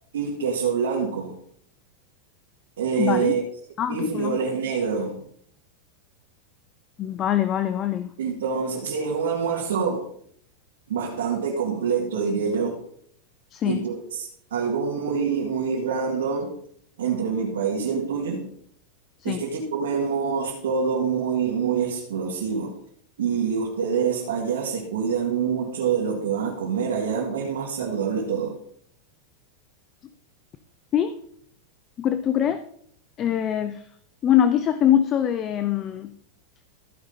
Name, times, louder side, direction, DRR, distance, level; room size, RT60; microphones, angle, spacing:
voice 1, 0.1-1.3 2.8-3.4 3.9-5.2 8.2-10.1 10.9-12.8 13.6-16.5 17.0-18.5 19.2-22.7 23.2-28.6, right 6 dB, 85° right, -3 dB, 2.1 m, -26 dB
voice 2, 3.0-3.3 3.8-4.4 7.0-8.1 13.5-13.8 19.2-19.4 30.9-31.1 32.0-32.6 33.2-33.8 34.2-36.1, left 10 dB, 30° left, 11 dB, 0.5 m, -23 dB
14.5 x 5.5 x 4.0 m, 0.65 s
supercardioid pair, 130°, 0 cm